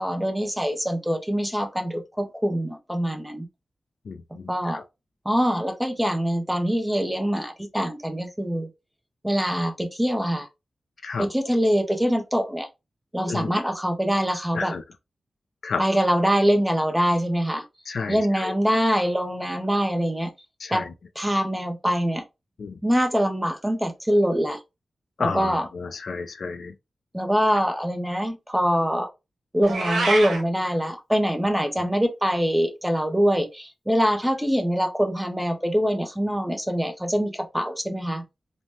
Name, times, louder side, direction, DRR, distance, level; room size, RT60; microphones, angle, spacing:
voice 1, 0.0-3.5 4.5-4.8 5.2-8.7 9.2-10.5 11.2-12.7 13.1-14.7 15.8-17.7 18.1-20.3 20.7-20.9 21.2-22.2 22.8-24.6 25.2-25.6 27.1-29.1 29.5-38.2, equal, 5° right, 0.5 m, -24 dB
voice 2, 4.1-4.8 11.0-11.3 13.3-13.6 14.5-14.8 15.6-15.8 17.9-18.5 20.6-20.9 22.6-22.8 25.2-26.7 31.8-31.9, left 4 dB, 65° left, 0.3 m, -31 dB
Meow, 29.6-30.4, right 2 dB, 90° right, 0.8 m, -25 dB
3.0 x 2.1 x 2.6 m
wide cardioid pair, 150°, 0 cm